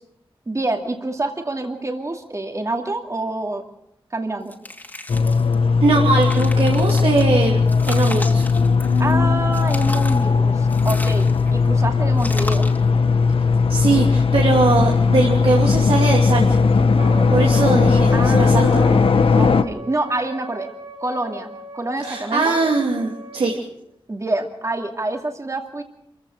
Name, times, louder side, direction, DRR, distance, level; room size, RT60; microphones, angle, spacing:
voice 1, 0.5-3.6 4.1-4.5 9.0-12.7 18.1-19.0 19.4-20.7 21.0-22.6 24.1-25.8, right 2 dB, 35° right, 3 dB, 2.4 m, -27 dB
sound 1, 4.5-5.5 6.0-7.2 7.7-9.2 9.5-10.3 10.7-11.6 12.2-12.9, left 1 dB, 20° left, 2.7 m, -35 dB
sound 2, 5.1-19.6, left 4 dB, 80° left, 1.1 m, -17 dB
voice 2, 5.8-7.6 7.9-8.5 13.7-16.6 17.3-18.8 22.0-23.6, right 3 dB, 90° right, -1 dB, 2.8 m, -20 dB
Wind instrument woodwind instrument, 17.0-23.5, right 3 dB, 65° right, 2.9 m, -39 dB
27.0 x 15.5 x 6.5 m, 0.80 s
wide cardioid pair, 85°, 9 cm